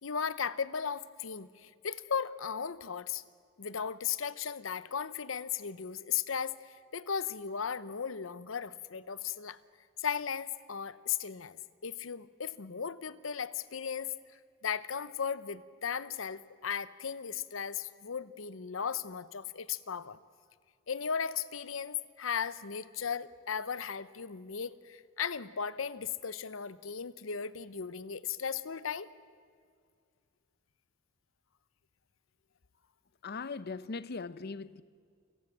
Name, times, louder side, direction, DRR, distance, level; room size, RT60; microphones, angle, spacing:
voice 1, 0.0-3.2 3.6-9.6 10.0-11.6 11.8-14.1 14.6-20.2 20.9-29.1, left 7 dB, 85° left, 0.8 m, -36 dB
voice 2, 33.2-34.8, left 4 dB, 55° left, 0.7 m, -39 dB
29.5 x 17.5 x 7.5 m
head